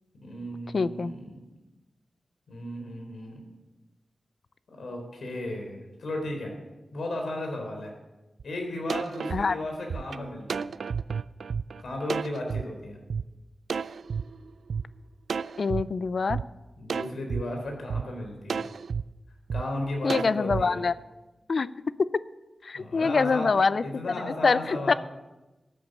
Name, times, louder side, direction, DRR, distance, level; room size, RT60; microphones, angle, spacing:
voice 1, 0.2-1.3 2.5-3.4 4.7-6.5 6.9-7.9 8.4-10.7 11.8-13.0 16.8-18.7 19.5-20.8 22.7-23.5 23.8-25.0, left 1 dB, 80° left, 2 dB, 3.8 m, -35 dB
voice 2, 0.7-1.1 9.3-9.6 15.6-16.4 20.0-20.9 21.5-21.7 22.0-22.1 22.6-23.8 24.4-24.9, left 4 dB, 55° left, 16 dB, 0.4 m, -24 dB
sound 1, 8.4-8.5 8.9-12.6 13.1-13.2 13.7-14.8 15.3-15.8 16.3-16.4 16.9-17.4 17.9-18.0 18.5-19.0 19.5-19.6 20.1-20.6, right 6 dB, 90° right, 0.3 m, -31 dB
13.5 x 9.3 x 6.6 m, 1.1 s
wide cardioid pair, 130°, 0 cm